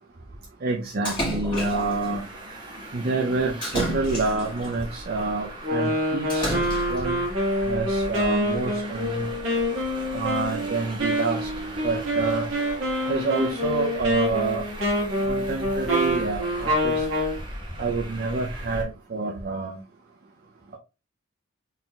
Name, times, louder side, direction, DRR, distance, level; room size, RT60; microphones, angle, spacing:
voice 1, 0.6-2.3 2.9-6.6 6.9-7.2 7.6-9.3 10.1-11.5 11.8-12.5 13.1-14.6 15.3-17.1 17.8-19.8, right 3 dB, 50° right, -1 dB, 0.5 m, -27 dB
Splash splatter, 1.0-2.0 3.6-4.7 6.3-7.1, equal, 25° left, 2.0 m, -29 dB
Traffic noise roadway noise, 1.7-18.8, right 1 dB, 25° right, 0.9 m, -38 dB
Wind instrument woodwind instrument, 5.6-17.4, equal, 70° right, 1.4 m, -26 dB
4.0 x 3.8 x 2.3 m, 0.30 s
head